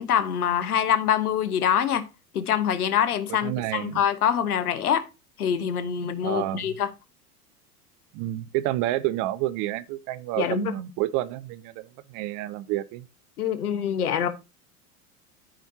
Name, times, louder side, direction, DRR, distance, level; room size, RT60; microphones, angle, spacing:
voice 1, 0.0-2.0 2.3-5.0 5.4-6.9 10.4-10.7 13.4-14.3, left 9 dB, 75° left, 1.3 m, -25 dB
voice 2, 3.4-4.0 6.2-6.7 8.1-13.1, right 15 dB, 45° right, 0.8 m, -29 dB
13.5 x 5.4 x 2.8 m
hypercardioid pair, 85°, 45 cm